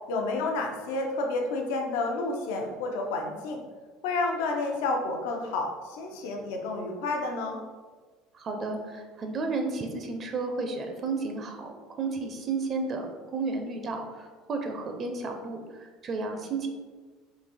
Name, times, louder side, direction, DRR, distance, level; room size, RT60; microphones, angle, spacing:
voice 1, 0.1-3.6 4.0-7.6, left 3 dB, 80° left, 2 dB, 0.6 m, -30 dB
voice 2, 8.3-13.1 13.3-16.7, right 3 dB, 35° right, 4 dB, 0.5 m, -32 dB
3.9 x 2.6 x 4.1 m, 1.4 s
supercardioid pair, 125°, 0 cm